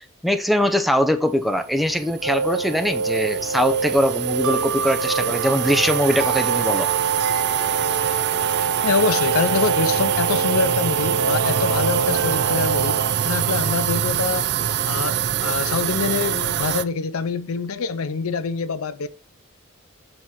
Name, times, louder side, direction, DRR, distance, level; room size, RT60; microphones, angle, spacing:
voice 1, 0.0-6.9, equal, ahead, 0.6 m, -22 dB
sound 1, 1.7-16.8, right 10 dB, 55° right, 0.4 m, -25 dB
sound 2, 2.2-13.1, right 5 dB, 90° right, 0.8 m, -25 dB
voice 2, 8.8-13.0 13.2-14.5 14.9-19.1, left 5 dB, 85° left, 0.6 m, -25 dB
7.7 x 4.2 x 4.6 m
head